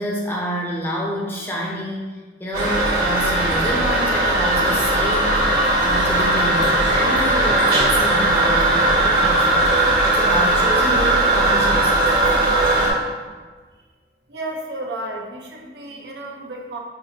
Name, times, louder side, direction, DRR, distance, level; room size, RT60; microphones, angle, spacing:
voice 1, 0.0-5.4 5.8-12.2, equal, 10° left, -4 dB, 0.5 m, -28 dB
Toilet flush, 2.5-12.9, right 2 dB, 50° right, 1.2 m, -18 dB
voice 2, 14.3-16.8, right 1 dB, 65° right, 1 dB, 0.5 m, -32 dB
5.5 x 2.4 x 2.8 m, 1.4 s
head